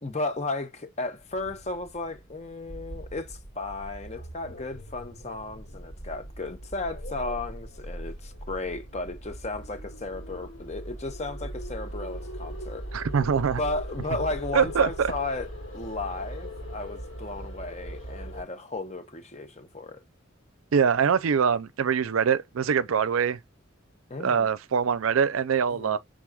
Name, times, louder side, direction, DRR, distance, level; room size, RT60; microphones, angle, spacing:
voice 1, 0.0-12.9 13.6-15.5 15.7-20.0 24.1-24.5 25.7-26.0, left 2 dB, 30° left, 0.8 m, -34 dB
sound 1, 1.2-18.4, equal, 75° left, 2.5 m, -40 dB
voice 2, 12.9-13.6 14.5-15.1 20.7-23.4 24.2-26.0, right 6 dB, 80° right, 0.4 m, -23 dB
6.2 x 3.7 x 2.3 m
head